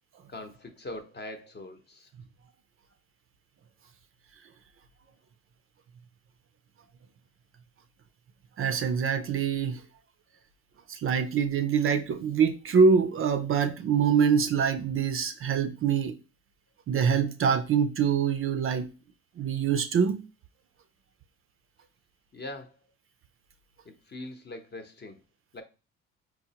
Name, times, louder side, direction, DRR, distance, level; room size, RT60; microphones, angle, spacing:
voice 1, 0.3-2.1 22.3-22.8 23.8-25.2 25.5-25.6, left 2 dB, 35° left, 0.8 m, -42 dB
voice 2, 8.6-9.8 10.9-16.2 16.9-18.9 19.4-20.2, right 6 dB, 45° right, 0.4 m, -25 dB
4.4 x 2.1 x 2.8 m
supercardioid pair, 65°, 31 cm